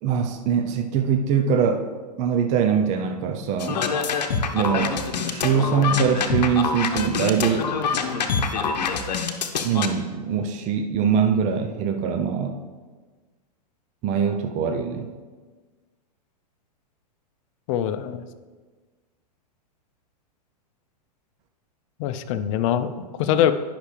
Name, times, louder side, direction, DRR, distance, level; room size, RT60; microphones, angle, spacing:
voice 1, 0.0-1.8 2.2-3.8 4.5-5.0 5.2-7.7 9.6-12.6 14.0-15.1, right 7 dB, 35° right, 5 dB, 0.6 m, -23 dB
sound 1, 3.6-9.9, left 5 dB, 80° left, 0.8 m, -25 dB
voice 2, 17.7-18.2 22.0-23.5, left 10 dB, 50° left, 11 dB, 0.6 m, -23 dB
10.0 x 5.8 x 3.3 m, 1.4 s
hypercardioid pair, 115°, 21 cm